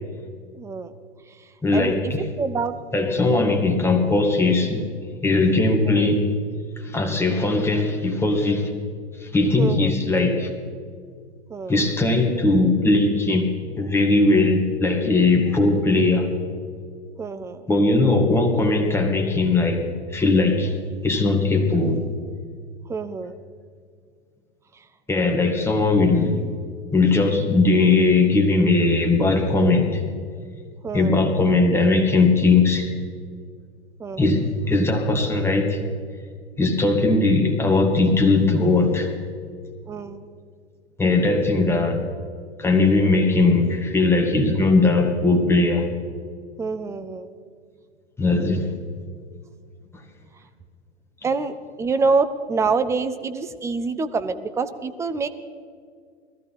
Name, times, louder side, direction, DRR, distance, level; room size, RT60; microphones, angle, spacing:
voice 1, 0.5-0.9 1.3-2.7 3.2-3.5 5.9-6.1 9.6-9.9 11.5-11.8 17.2-17.6 22.9-23.4 24.7-24.8 30.8-31.2 34.0-34.3 39.9-40.2 46.6-47.3 51.2-55.3, right 4 dB, 10° right, 10 dB, 0.5 m, -26 dB
voice 2, 1.6-2.2 2.9-4.8 5.2-6.3 6.8-8.7 9.2-10.5 11.7-16.3 17.7-20.8 21.0-22.0 25.1-26.4 26.9-30.0 30.9-32.9 34.2-35.8 36.6-39.1 41.0-42.1 42.6-45.9 48.2-48.7, left 3 dB, 5° left, 3 dB, 1.7 m, -19 dB
21.0 x 13.5 x 4.3 m, 2.1 s
figure-of-eight pair, 100°, 34 cm